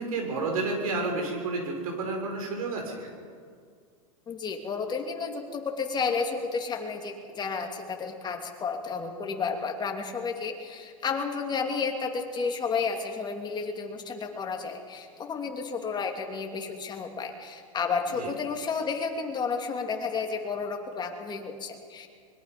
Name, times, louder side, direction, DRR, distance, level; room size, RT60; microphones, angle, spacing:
voice 1, 0.0-3.1 18.2-18.3, right 3 dB, 75° right, 2 dB, 6.0 m, -30 dB
voice 2, 4.3-22.1, left 5 dB, 25° left, 3 dB, 2.9 m, -32 dB
24.5 x 22.0 x 5.4 m, 2.1 s
hypercardioid pair, 110°, 18 cm